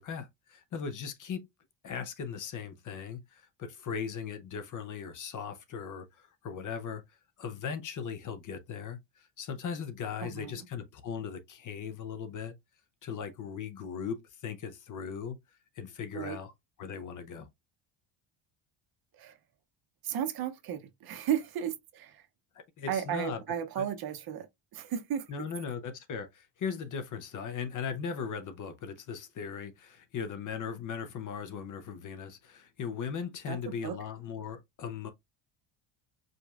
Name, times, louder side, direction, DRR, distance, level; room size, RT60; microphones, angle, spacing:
voice 1, 0.0-1.5 1.8-7.0 7.4-12.5 13.0-15.4 15.7-16.5 16.8-17.5 22.8-23.4 23.8-23.9 25.3-35.1, left 6 dB, 40° left, 0.6 m, -38 dB
voice 2, 10.2-10.5 16.1-16.4 19.2-19.3 20.0-22.2 22.9-24.5 24.7-25.5 33.5-33.9, right 9 dB, 45° right, 0.8 m, -34 dB
5.1 x 3.0 x 2.4 m
cardioid pair, 170°, 50 cm